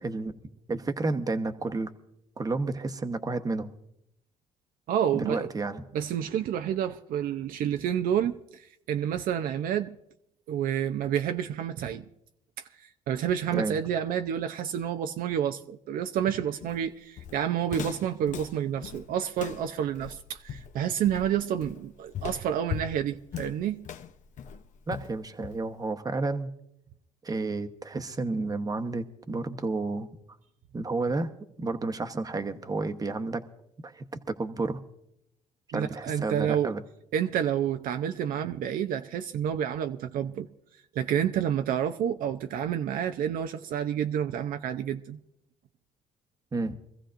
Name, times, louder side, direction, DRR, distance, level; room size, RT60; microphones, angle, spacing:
voice 1, 0.0-0.3 0.7-1.9 2.4-3.7 5.1-5.8 13.5-13.8 24.9-26.5 27.2-30.1 30.7-31.3 31.6-33.4 33.8-34.8 35.7-36.8 46.5-46.8, right 3 dB, 25° right, 1.0 m, -31 dB
voice 2, 4.9-5.5 5.9-9.9 10.5-12.0 12.8-23.8 35.7-36.7 37.1-40.5 40.9-45.2, right 9 dB, 70° right, 0.6 m, -29 dB
Walk footsteps, 16.6-25.9, left 8 dB, 55° left, 0.8 m, -40 dB
24.0 x 15.0 x 2.6 m
cardioid pair, 85°, 15 cm